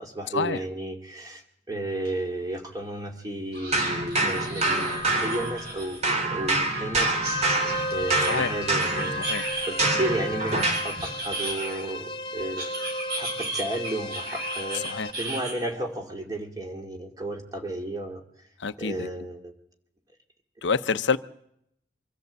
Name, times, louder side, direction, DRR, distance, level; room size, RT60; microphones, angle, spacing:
voice 1, 0.0-6.0 6.3-7.2 7.9-9.3 9.7-12.7 13.2-18.2 18.8-19.5, right 1 dB, 20° right, 2.3 m, -33 dB
sound 1, 2.0-2.1 2.5-2.6 3.5-6.1 7.2-9.9 10.5-12.0 12.6-15.5, right 2 dB, 55° right, 6.4 m, -35 dB
sound 2, 3.7-5.8 6.0-10.9, right 2 dB, 35° right, 2.4 m, -26 dB
sound 3, 7.2-15.1, left 1 dB, 25° left, 1.0 m, -35 dB
voice 2, 18.6-18.9 20.6-21.2, left 5 dB, 75° left, 0.7 m, -26 dB
24.0 x 13.5 x 8.1 m
head